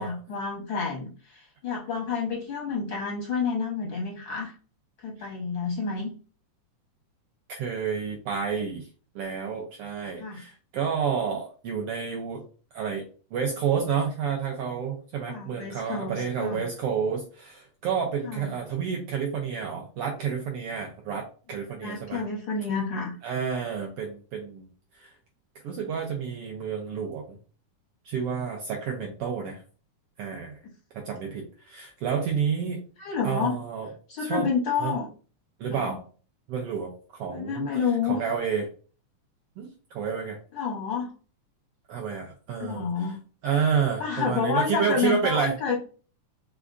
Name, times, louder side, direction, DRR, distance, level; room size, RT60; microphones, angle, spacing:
voice 1, 0.0-4.5 5.0-6.1 10.2-10.4 15.3-16.6 18.2-18.5 21.8-23.2 33.0-33.6 34.1-35.1 35.7-36.0 37.3-38.2 40.5-41.1 42.6-43.2 44.0-45.8, left 5 dB, 75° left, -2 dB, 1.1 m, -29 dB
voice 2, 7.5-8.9 9.1-12.4 12.7-13.1 13.3-22.2 23.2-24.7 24.9-25.1 25.6-27.4 28.0-29.6 30.2-30.6 30.9-32.8 33.2-33.9 34.2-34.5 34.8-34.9 35.6-36.0 36.5-37.7 38.1-38.7 39.6-40.4 41.9-43.1 43.4-45.6, right 6 dB, 85° right, 0 dB, 1.3 m, -30 dB
5.0 x 3.4 x 2.5 m, 0.38 s
omnidirectional pair, 3.4 m